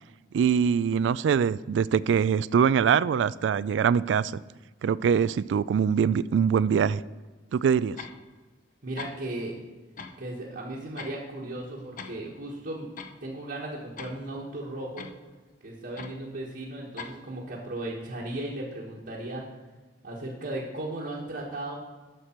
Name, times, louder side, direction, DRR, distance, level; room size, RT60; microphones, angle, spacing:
voice 1, 0.3-4.3 4.8-7.0 7.5-8.0, right 7 dB, 85° right, 20 dB, 0.3 m, -23 dB
sound 1, 8.0-8.2 8.7-8.8 9.0-9.1 10.0-10.2 10.5-11.2 11.6-12.2 12.5-12.6 13.0-13.1 14.0-14.2 15.0-15.2 16.0-16.1 17.0-17.1, left 5 dB, 50° left, 0.7 m, -40 dB
voice 2, 8.8-9.5 10.2-12.9 13.2-15.1 15.6-19.5 20.0-21.8, right 1 dB, 65° right, -6 dB, 1.4 m, -36 dB
11.5 x 6.7 x 4.5 m, 1.3 s
head